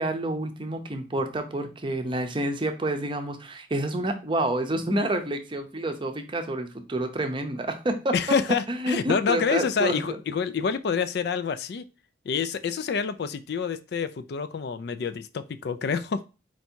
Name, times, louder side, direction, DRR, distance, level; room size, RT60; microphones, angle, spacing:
voice 1, 0.0-8.1 8.7-10.2, right 1 dB, 25° right, 6 dB, 0.6 m, -28 dB
voice 2, 8.1-11.9 12.3-16.2, left 6 dB, 60° left, 13 dB, 0.4 m, -27 dB
4.5 x 2.7 x 4.4 m, 0.30 s
head